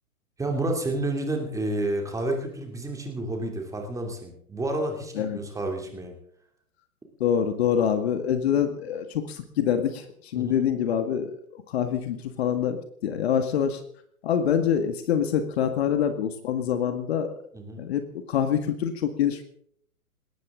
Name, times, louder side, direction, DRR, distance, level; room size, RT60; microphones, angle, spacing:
voice 1, 0.4-6.1 10.3-10.5 17.5-17.9, right 2 dB, 5° right, 3 dB, 2.8 m, -30 dB
voice 2, 7.2-13.8 14.2-17.3 17.8-18.0 18.3-19.4, left 8 dB, 45° left, 8 dB, 1.9 m, -25 dB
20.0 x 18.5 x 3.8 m, 0.64 s
figure-of-eight pair, 120°, 44 cm